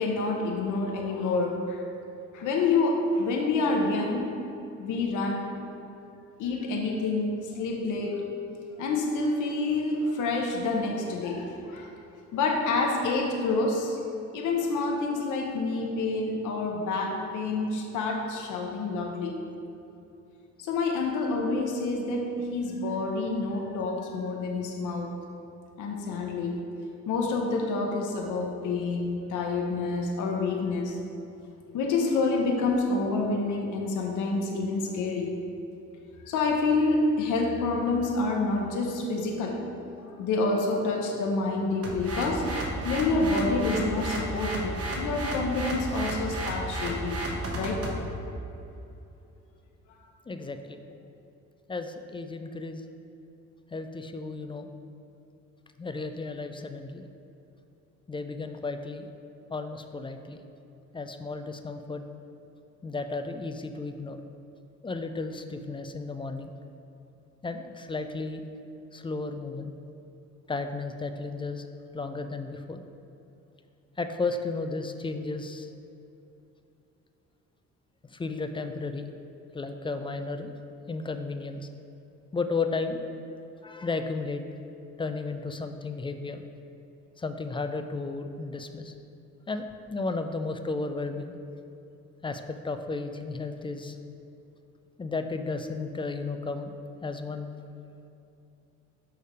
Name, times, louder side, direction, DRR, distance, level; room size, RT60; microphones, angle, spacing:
voice 1, 0.0-1.8 2.3-4.3 4.8-5.5 6.4-8.2 8.8-12.0 12.3-14.0 14.3-19.4 20.6-25.1 25.8-26.5 27.1-31.0 31.7-35.3 36.2-39.6 40.0-47.2 47.5-47.9, left 3 dB, 85° left, 1 dB, 0.8 m, -28 dB
sound 1, 41.8-48.0, right 1 dB, 50° right, 1.0 m, -33 dB
voice 2, 50.3-50.8 51.7-52.8 53.7-54.7 55.8-57.0 58.1-59.1 59.5-60.4 60.9-62.0 62.8-64.2 64.8-66.5 67.4-68.4 68.9-69.7 70.5-71.7 71.9-72.8 74.0-75.7 78.1-79.0 79.5-80.5 80.9-81.7 82.3-83.0 83.6-84.4 85.0-86.4 87.2-88.9 89.5-89.6 89.9-91.3 92.2-94.0 95.0-96.7 97.0-97.5, left 3 dB, 15° left, 7 dB, 0.3 m, -33 dB
6.5 x 3.4 x 5.0 m, 2.8 s
cardioid pair, 90°, 30 cm